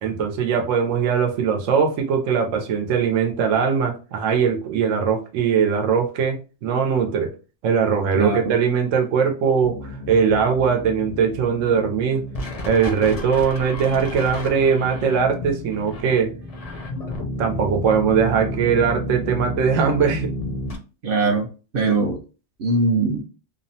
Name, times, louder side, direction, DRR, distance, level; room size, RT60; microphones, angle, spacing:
voice 1, 0.0-7.3 7.6-12.2 12.7-16.3 17.4-20.3, right 6 dB, 90° right, 3 dB, 1.0 m, -20 dB
voice 2, 8.1-8.5 21.0-21.5 21.7-22.2 22.6-23.2, right 3 dB, 60° right, 1 dB, 0.6 m, -21 dB
sound 1, 9.6-20.8, left 1 dB, 50° left, 0.4 m, -31 dB
2.7 x 2.0 x 2.6 m, 0.33 s
omnidirectional pair, 1.3 m